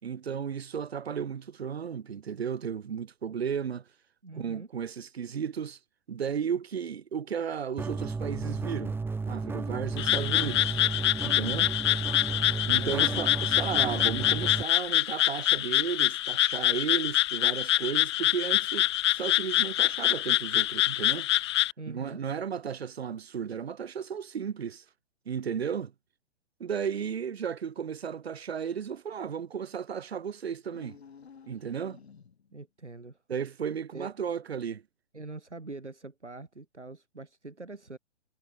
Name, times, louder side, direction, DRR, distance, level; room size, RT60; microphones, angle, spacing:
voice 1, 0.0-3.8 4.3-5.8 6.1-8.9 9.3-10.8 11.2-11.7 12.7-21.3 21.9-24.8 25.2-25.9 26.6-31.0 31.5-32.0 33.3-34.8, right 7 dB, 65° right, 4.9 m, -34 dB
voice 2, 4.2-4.7 12.8-13.2 21.8-22.2 32.5-33.2 33.9-34.1 35.1-38.0, right 3 dB, 90° right, 2.7 m, -43 dB
sound 1, 7.8-14.6, right 4 dB, 5° right, 2.4 m, -33 dB
Frog, 10.0-21.7, left 15 dB, 25° left, 0.5 m, -26 dB
sound 2, 30.6-32.6, left 6 dB, 65° left, 4.7 m, -53 dB
figure-of-eight pair, 120°, 34 cm